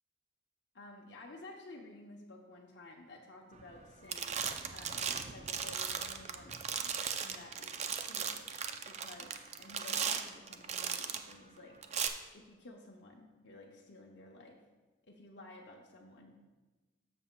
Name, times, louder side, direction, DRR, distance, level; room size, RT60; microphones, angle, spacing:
voice 1, 0.7-4.4 4.7-8.4 8.9-11.8 12.3-14.6 15.0-16.3, left 2 dB, 65° left, -1 dB, 0.8 m, -53 dB
sound 1, 3.6-3.8 4.1-11.3 11.8-12.1, right 7 dB, 35° right, 0.4 m, -37 dB
13.0 x 6.9 x 2.2 m, 1.2 s
head